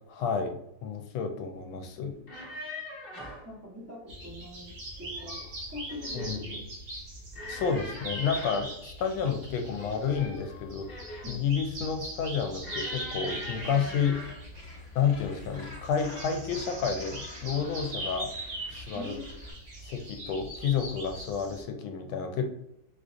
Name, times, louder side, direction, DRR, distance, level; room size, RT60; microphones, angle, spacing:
voice 1, 0.1-2.1 6.1-6.4 7.5-10.9 11.3-14.2 14.9-18.3 18.7-19.2 19.8-22.5, left 6 dB, 80° left, 6 dB, 1.3 m, -30 dB
sound 1, 2.1-3.5 4.9-5.5 5.9-6.4 7.3-8.7 9.7-11.4 12.6-14.5 15.3-15.6 16.0-16.2, left 1 dB, 40° left, 0.9 m, -43 dB
voice 2, 3.4-6.6 11.2-11.4 18.9-19.2, left 1 dB, 15° right, -7 dB, 0.5 m, -43 dB
sound 2, 4.1-21.6, right 1 dB, 60° right, 1.2 m, -41 dB
Gull seagull, 14.5-19.5, left 1 dB, 55° left, 0.5 m, -50 dB
4.4 x 2.5 x 2.5 m, 0.80 s
omnidirectional pair, 2.2 m